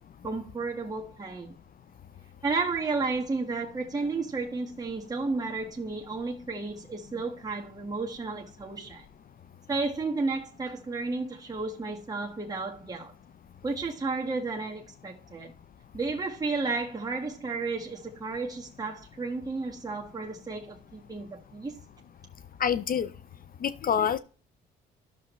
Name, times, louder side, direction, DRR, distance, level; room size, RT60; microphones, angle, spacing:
voice 1, 0.2-1.5 2.4-9.0 9.7-13.1 13.6-15.5 15.9-21.8, right 3 dB, 20° right, 1.3 m, -32 dB
voice 2, 22.6-23.1 23.6-24.2, left 8 dB, 45° left, 0.5 m, -26 dB
12.0 x 6.6 x 3.0 m
cardioid pair, 90°, 20 cm